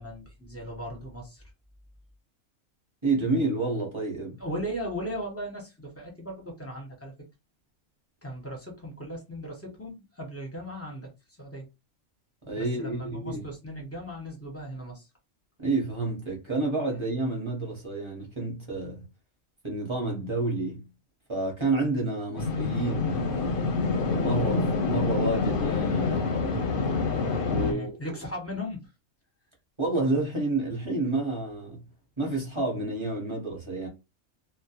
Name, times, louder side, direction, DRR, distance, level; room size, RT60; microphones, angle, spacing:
voice 1, 0.0-1.4 4.4-7.1 8.2-11.7 12.6-15.1 27.7-28.9, equal, 15° left, 0.6 m, -37 dB
voice 2, 3.0-4.4 12.4-13.4 15.6-19.0 19.6-20.8 21.3-23.5 23.9-26.7 27.5-28.0 29.8-31.8 32.2-33.9, right 2 dB, 25° right, 0.8 m, -29 dB
sound 1, 22.4-27.7, left 4 dB, 55° left, 0.6 m, -27 dB
2.3 x 2.1 x 2.8 m
omnidirectional pair, 1.4 m